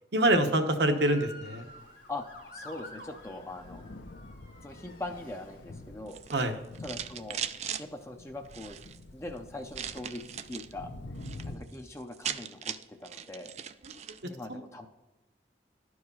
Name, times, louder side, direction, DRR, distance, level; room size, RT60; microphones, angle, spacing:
voice 1, 0.1-1.7 6.3-6.6 13.8-13.9 14.5-14.6, right 1 dB, 70° right, 7 dB, 1.0 m, -26 dB
Motor vehicle (road) / Siren, 0.8-6.1 6.7-7.1, left 1 dB, 50° left, 1.5 m, -50 dB
Thunder, 2.0-11.6, left 2 dB, 70° left, 0.8 m, -48 dB
voice 2, 2.5-3.8 4.6-6.2 6.8-7.4 7.8-8.8 9.1-10.9 11.4-13.5 14.2-14.9, left 2 dB, 15° left, 4 dB, 0.5 m, -41 dB
sound 1, 6.1-7.8 8.4-9.0 9.7-10.7 11.1-11.5 11.7-11.8 12.0-14.2, right 9 dB, 40° right, 0.3 m, -39 dB
11.5 x 4.8 x 5.5 m, 1.0 s
head